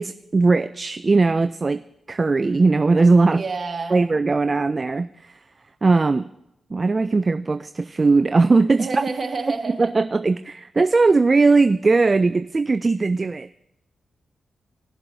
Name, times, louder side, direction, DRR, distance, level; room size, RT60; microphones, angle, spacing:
voice 1, 0.0-1.8 2.1-3.4 3.9-5.3 5.8-6.3 6.7-9.0 9.8-13.5, right 3 dB, 40° right, 11 dB, 0.3 m, -19 dB
voice 2, 3.3-4.0 8.8-10.0, right 4 dB, 55° right, 4 dB, 1.4 m, -29 dB
17.5 x 7.0 x 2.7 m, 0.84 s
cardioid pair, 55°, 0 cm